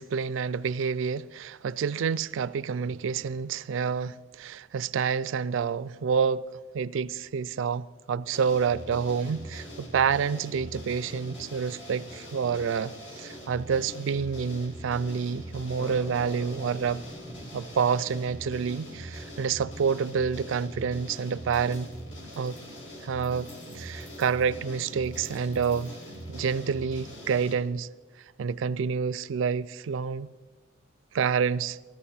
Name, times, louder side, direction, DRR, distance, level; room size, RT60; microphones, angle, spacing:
voice 1, 0.0-6.4 6.7-17.0 17.5-21.9 22.4-22.6 23.0-23.5 23.7-26.0 26.3-27.9 28.4-30.3 31.1-31.8, right 6 dB, 70° right, 0.3 m, -28 dB
sound 1, 8.3-27.5, equal, 65° left, 2.3 m, -42 dB
sound 2, 15.8-23.2, right 1 dB, ahead, 0.5 m, -48 dB
sound 3, 21.5-26.8, left 2 dB, 45° left, 4.6 m, -59 dB
14.0 x 13.5 x 4.2 m
head